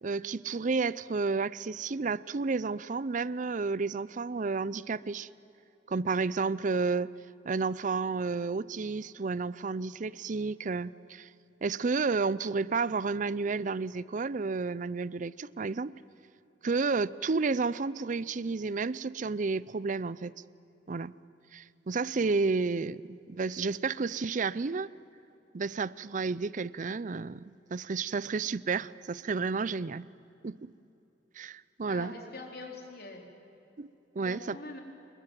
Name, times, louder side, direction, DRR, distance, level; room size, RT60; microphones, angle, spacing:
voice 1, 0.0-5.3 5.9-7.1 7.5-11.3 11.6-15.9 16.6-20.3 20.9-21.1 21.5-24.9 25.5-30.0 30.4-30.7 31.4-32.1 33.8-33.9 34.2-34.6, right 4 dB, 45° right, 20 dB, 0.5 m, -31 dB
voice 2, 31.9-33.2 34.2-34.8, left 2 dB, 55° left, 1 dB, 4.0 m, -43 dB
27.5 x 22.0 x 7.5 m, 3.0 s
head